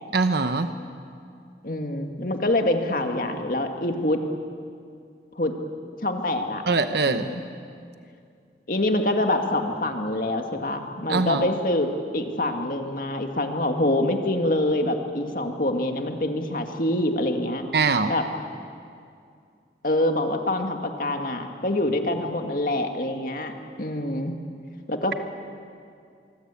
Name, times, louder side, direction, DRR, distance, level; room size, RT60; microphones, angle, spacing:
voice 1, 0.1-0.7 6.7-7.3 11.1-11.5 17.7-18.1, right 4 dB, 70° right, 8 dB, 1.0 m, -22 dB
voice 2, 1.6-4.2 5.4-5.5 6.0-6.6 7.0-7.4 8.7-11.9 12.1-17.7 18.1-18.2 19.8-23.5 23.8-24.4 24.9-25.1, left 1 dB, 50° left, 4 dB, 2.1 m, -25 dB
24.5 x 24.0 x 8.4 m, 2.4 s
head